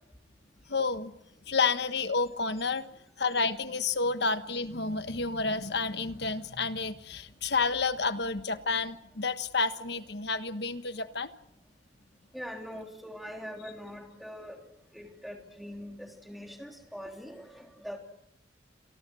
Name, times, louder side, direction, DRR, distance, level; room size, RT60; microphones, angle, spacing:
voice 1, 0.7-1.1 1.5-2.8 3.2-11.3, left 4 dB, 60° left, 10 dB, 1.4 m, -30 dB
voice 2, 12.3-14.6 14.9-18.0, equal, ahead, 2 dB, 3.3 m, -43 dB
29.5 x 23.5 x 6.3 m, 0.77 s
head